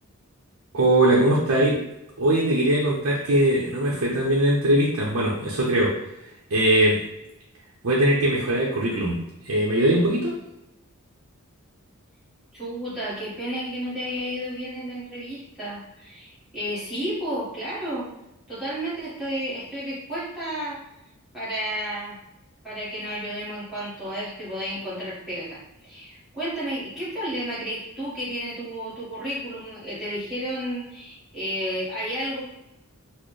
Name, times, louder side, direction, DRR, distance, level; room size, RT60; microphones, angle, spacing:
voice 1, 0.7-1.8 2.2-5.9 6.5-7.0 7.8-9.2 9.5-10.3, right 1 dB, 65° right, -4 dB, 0.6 m, -21 dB
voice 2, 12.5-18.1 18.5-20.8 21.3-22.2 22.6-32.5, equal, ahead, -12 dB, 1.4 m, -32 dB
4.2 x 2.0 x 3.1 m, 0.89 s
head